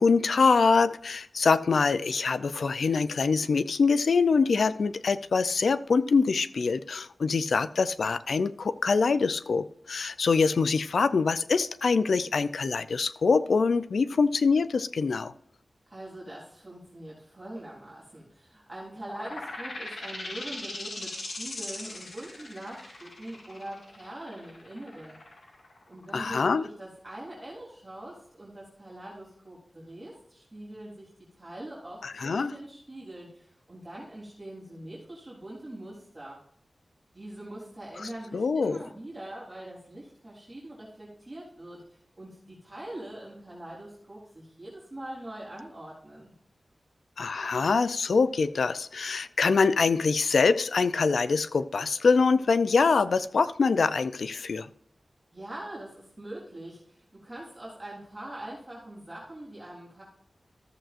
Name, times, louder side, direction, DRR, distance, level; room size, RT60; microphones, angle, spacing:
voice 1, 0.0-15.3 26.1-26.6 32.0-32.5 38.3-38.8 47.2-54.7, left 4 dB, 90° left, 0.4 m, -24 dB
voice 2, 15.9-25.2 25.9-31.1 31.3-36.4 37.1-46.3 55.3-60.0, right 1 dB, 20° right, 3.4 m, -43 dB
sound 1, 19.0-26.4, left 2 dB, 70° left, 2.0 m, -40 dB
14.0 x 7.5 x 2.5 m
wide cardioid pair, 110°, 0 cm